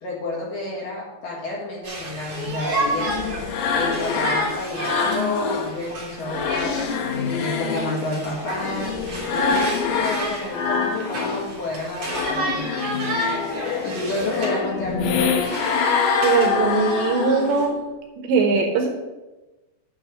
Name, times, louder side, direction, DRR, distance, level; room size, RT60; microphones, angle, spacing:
voice 1, 0.0-3.2 3.7-6.7 7.1-8.9 9.3-12.9 13.8-15.4, left 2 dB, 55° left, -5 dB, 3.0 m, -30 dB
Conversation, 1.8-14.6 15.0-17.6, right 2 dB, 40° right, 2.4 m, -31 dB
sound 1, 2.3-5.7 6.1-11.5 11.8-17.7, left 5 dB, 75° left, 3.1 m, -25 dB
voice 2, 16.2-17.8 18.2-18.9, right 4 dB, 75° right, 3 dB, 2.9 m, -20 dB
8.9 x 4.7 x 7.6 m, 1.1 s
omnidirectional pair, 5.6 m